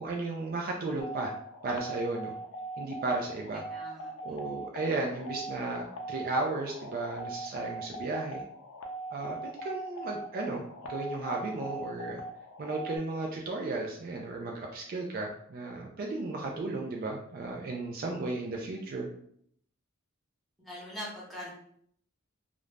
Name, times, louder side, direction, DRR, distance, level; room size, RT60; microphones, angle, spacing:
voice 1, 0.0-1.3 1.6-2.3 2.8-3.6 4.2-8.4 9.1-12.2 12.6-19.1, right 2 dB, 45° right, 0 dB, 0.3 m, -34 dB
sound 1, 1.0-13.0, right 2 dB, 85° left, 0.4 m, -40 dB
voice 2, 3.7-4.4 20.6-21.5, equal, ahead, -6 dB, 0.9 m, -42 dB
2.4 x 2.0 x 3.2 m, 0.66 s
head